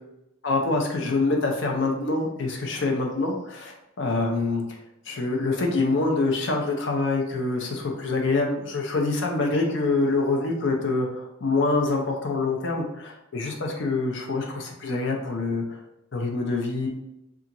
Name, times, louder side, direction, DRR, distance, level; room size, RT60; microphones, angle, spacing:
voice 1, 0.4-4.8 5.1-15.8 16.1-16.9, left 3 dB, 60° left, 1 dB, 0.5 m, -25 dB
2.8 x 2.4 x 2.5 m, 0.90 s
head